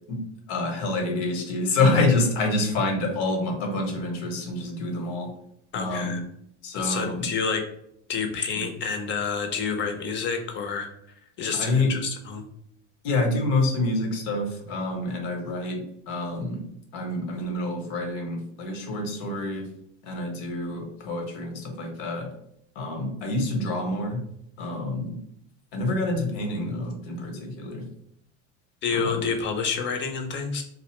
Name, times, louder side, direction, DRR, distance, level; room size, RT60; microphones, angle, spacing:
voice 1, 0.5-5.3 5.7-6.2 6.6-7.2 8.5-8.6 11.5-12.0 13.0-16.6 16.9-19.7 20.0-22.3 22.8-24.2 24.6-25.2 25.7-27.9 28.9-29.3, left 2 dB, 70° left, 3 dB, 0.9 m, -27 dB
voice 2, 5.7-6.2 6.7-7.6 8.1-10.9 11.4-12.4 28.8-30.6, left 5 dB, 35° left, 4 dB, 0.5 m, -28 dB
2.6 x 2.0 x 3.0 m, 0.71 s
supercardioid pair, 110°, 35 cm